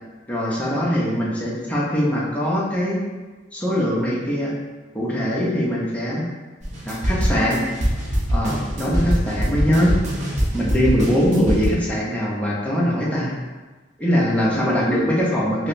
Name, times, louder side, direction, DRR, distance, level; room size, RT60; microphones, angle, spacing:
voice 1, 0.3-3.0 3.5-4.5 4.9-6.2 6.8-7.6 8.3-9.9 10.5-13.3 14.0-15.7, equal, 10° left, -6 dB, 0.6 m, -22 dB
sound 1, 6.6-11.7, equal, 40° right, 0.7 m, -23 dB
4.7 x 2.1 x 2.6 m, 1.3 s
head